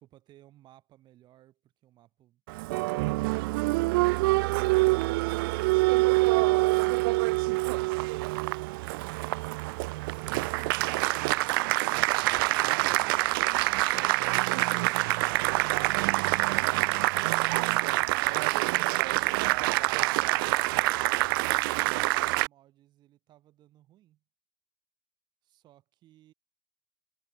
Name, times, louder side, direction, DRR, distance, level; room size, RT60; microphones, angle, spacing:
voice 1, 0.0-2.4 21.0-24.2 25.4-26.3, right 14 dB, 30° right, 4.4 m, -60 dB
Applause, 2.5-22.5, right 23 dB, 50° right, 0.4 m, -26 dB
sound 1, 11.7-21.8, left 7 dB, 20° left, 5.6 m, -58 dB
supercardioid pair, 155°, 15 cm